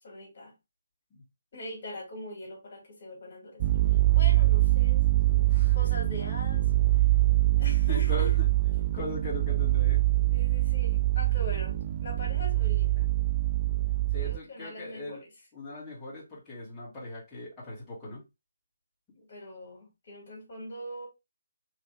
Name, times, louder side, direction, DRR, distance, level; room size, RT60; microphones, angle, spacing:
voice 1, 0.0-0.5 1.5-3.6 3.9-5.1 5.7-6.7 7.6-8.3 10.3-13.1 14.2-15.3 19.2-21.1, left 1 dB, 40° left, 2.0 m, -42 dB
sound 1, 3.6-14.4, right 17 dB, 25° right, 0.4 m, -24 dB
voice 2, 7.4-8.5 8.9-10.0 14.1-15.2 15.5-18.2, left 2 dB, 10° left, 1.7 m, -40 dB
3.3 x 3.2 x 3.2 m
figure-of-eight pair, 145°, 0 cm